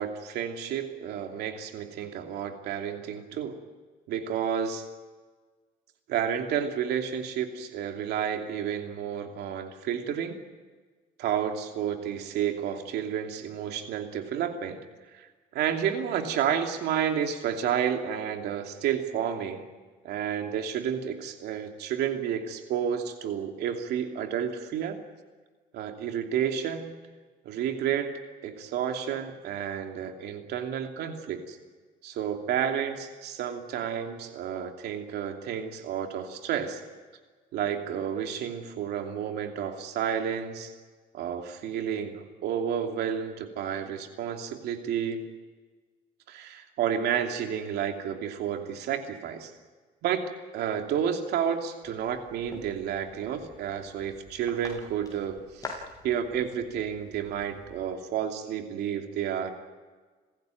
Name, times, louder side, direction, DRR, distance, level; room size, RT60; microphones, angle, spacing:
voice 1, 0.0-3.6 4.1-4.8 6.1-10.4 11.2-14.8 15.1-15.3 15.5-19.7 20.0-25.0 25.7-26.9 27.4-28.1 28.4-31.6 32.0-36.8 37.5-40.7 41.1-45.3 46.3-49.5 50.0-50.2 50.5-59.5, right 8 dB, 80° right, 4 dB, 2.9 m, -31 dB
sound 1, 51.8-57.9, left 3 dB, 20° left, 7.2 m, -46 dB
28.5 x 16.0 x 9.4 m, 1.4 s
cardioid pair, 110°, 17 cm